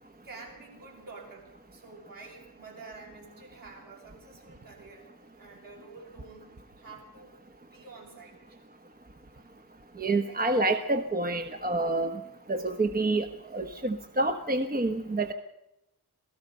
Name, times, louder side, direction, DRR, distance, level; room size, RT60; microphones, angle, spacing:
voice 1, 0.2-5.1 5.4-8.6 9.3-9.5 10.0-10.6 13.5-13.8, right 3 dB, 60° right, 0 dB, 8.0 m, -49 dB
voice 2, 10.0-12.1 12.5-13.3 13.5-15.3, right 2 dB, 25° right, 6 dB, 1.1 m, -27 dB
27.0 x 18.5 x 5.5 m, 0.87 s
wide cardioid pair, 160°, 39 cm